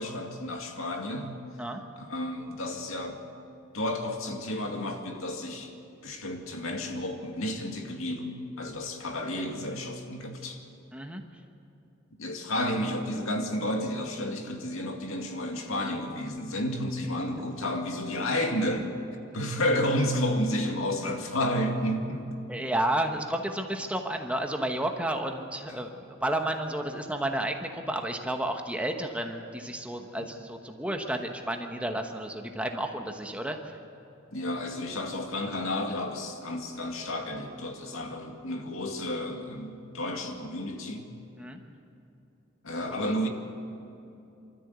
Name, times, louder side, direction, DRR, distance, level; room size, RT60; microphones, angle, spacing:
voice 1, 0.0-1.4 2.0-3.2 3.7-5.7 6.0-10.6 12.2-18.9 19.3-22.4 34.3-41.1 42.6-43.3, left 1 dB, 80° left, 3 dB, 2.2 m, -31 dB
voice 2, 10.9-11.2 22.5-26.0 26.2-33.7 41.4-41.6 42.9-43.0, right 1 dB, 5° right, 4 dB, 1.1 m, -31 dB
25.0 x 13.5 x 8.2 m, 2.8 s
head